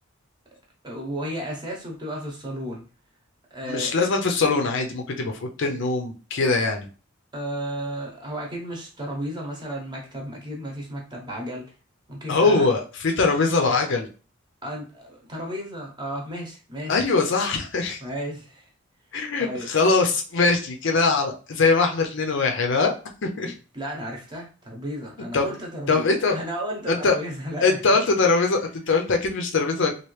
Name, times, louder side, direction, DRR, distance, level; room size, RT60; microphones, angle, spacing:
voice 1, 0.8-2.8 3.5-4.0 7.3-11.6 12.1-12.6 14.6-17.0 18.0-18.6 19.4-19.7 23.5-26.0 26.3-27.8, right 1 dB, 20° right, 0 dB, 0.9 m, -33 dB
voice 2, 3.6-6.9 12.3-14.1 16.9-18.0 19.1-22.9 23.2-23.5 25.3-25.5 25.9-26.4 26.9-27.2 27.6-29.9, left 3 dB, 65° left, 3 dB, 0.6 m, -22 dB
3.0 x 2.5 x 3.2 m, 0.36 s
head